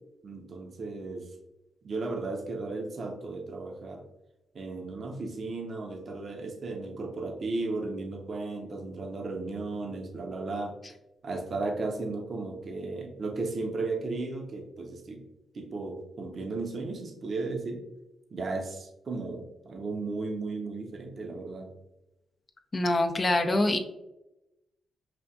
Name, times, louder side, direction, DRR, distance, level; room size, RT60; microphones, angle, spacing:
voice 1, 0.2-1.3 1.8-4.0 4.5-10.7 11.2-15.2 15.5-17.8 18.3-21.7, right 3 dB, 55° right, 3 dB, 0.7 m, -35 dB
voice 2, 22.7-23.8, left 1 dB, 35° left, 5 dB, 0.5 m, -24 dB
5.9 x 2.5 x 2.3 m, 0.92 s
supercardioid pair, 55°, 0 cm